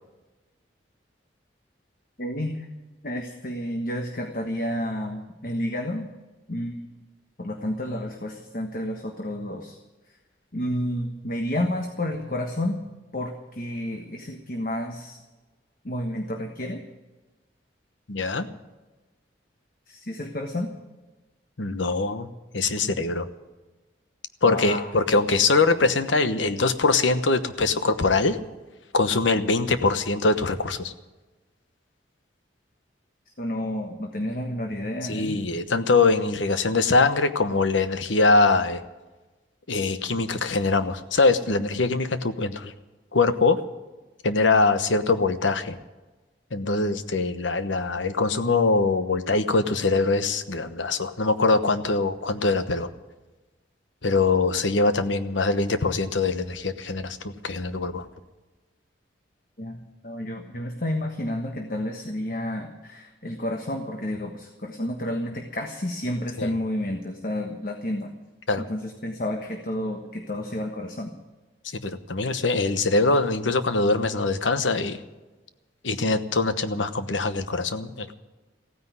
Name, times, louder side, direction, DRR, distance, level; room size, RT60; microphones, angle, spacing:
voice 1, 2.2-2.7 3.0-6.1 6.5-6.9 7.4-9.8 10.5-12.8 13.1-15.2 15.8-16.8 19.9-20.7 24.4-24.9 33.4-35.4 59.6-68.1 68.6-71.1, left 1 dB, 50° left, 3 dB, 1.3 m, -30 dB
voice 2, 18.1-18.5 21.6-22.3 22.5-23.3 24.4-28.4 28.9-30.9 35.1-38.8 39.7-42.7 43.1-43.6 44.2-45.8 46.5-52.9 54.0-58.0 66.4-66.5 68.5-68.6 71.7-75.0 75.8-78.1, left 3 dB, 85° left, 11 dB, 1.1 m, -23 dB
15.5 x 9.7 x 9.5 m, 1.2 s
head